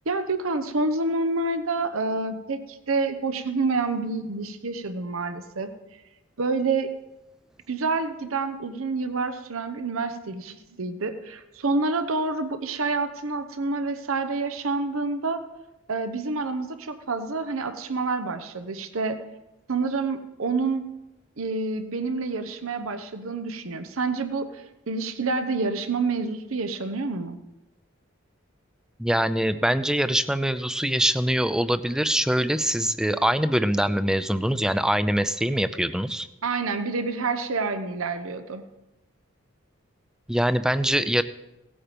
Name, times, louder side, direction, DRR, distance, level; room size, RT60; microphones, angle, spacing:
voice 1, 0.1-5.7 6.4-6.9 7.7-15.4 15.9-19.2 19.7-20.9 21.4-27.4 36.4-38.6, right 3 dB, 85° right, 9 dB, 0.9 m, -28 dB
voice 2, 29.0-36.3 40.3-41.2, right 1 dB, 5° right, 12 dB, 0.4 m, -23 dB
17.0 x 8.8 x 5.1 m, 0.97 s
head